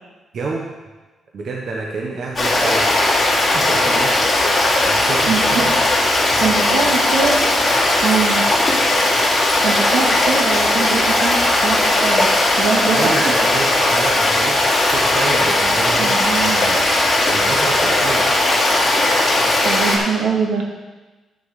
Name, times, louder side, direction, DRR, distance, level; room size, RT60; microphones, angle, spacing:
voice 1, 0.3-0.7 1.3-3.1 3.5-4.2 4.5-5.7 12.9-16.8 17.3-18.3, right 3 dB, 50° right, -1 dB, 1.0 m, -28 dB
Stream, 2.4-20.0, left 2 dB, 20° left, 2.9 m, -17 dB
voice 2, 5.2-6.0 6.4-7.4 7.7-8.4 9.3-12.3 12.6-13.3 16.0-16.6 19.6-20.7, right 5 dB, 75° right, 0 dB, 1.8 m, -23 dB
11.0 x 6.6 x 4.9 m, 1.2 s
cardioid pair, 165°, 0 cm